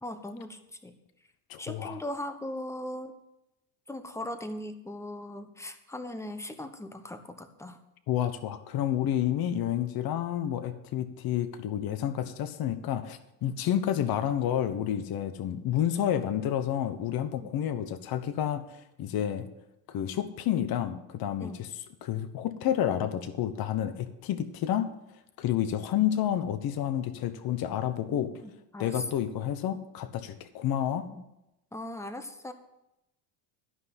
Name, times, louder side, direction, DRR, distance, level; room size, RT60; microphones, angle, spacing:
voice 1, 0.0-1.0 1.6-3.2 3.9-7.8 13.4-13.5 17.3-17.5 21.4-21.6 28.1-29.0 31.1-31.2 31.7-32.5, left 1 dB, 5° left, 9 dB, 1.1 m, -39 dB
voice 2, 1.5-2.0 8.1-18.6 19.0-19.5 19.9-24.9 25.4-28.3 28.8-31.1, left 10 dB, 50° left, 11 dB, 1.1 m, -30 dB
12.5 x 5.6 x 8.0 m, 0.89 s
supercardioid pair, 105°, 47 cm